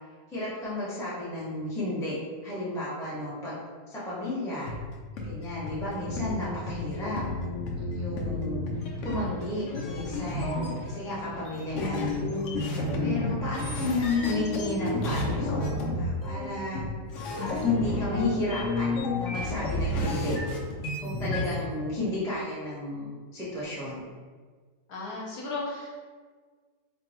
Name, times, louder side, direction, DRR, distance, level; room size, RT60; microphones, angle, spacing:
voice 1, 0.3-2.2 2.4-3.6 3.9-4.7 5.2-7.2 7.9-8.7 9.0-12.4 13.0-16.8 17.4-20.4 21.0-24.0, left 2 dB, 5° left, -8 dB, 0.3 m, -33 dB
sound 1, 4.7-4.8 5.2-5.3 5.7-5.8 6.0-21.5, left 2 dB, 90° left, 0.6 m, -31 dB
voice 2, 7.8-8.2 21.3-21.7 24.9-25.9, left 3 dB, 65° left, -4 dB, 1.2 m, -37 dB
3.6 x 2.2 x 4.1 m, 1.5 s
omnidirectional pair, 2.0 m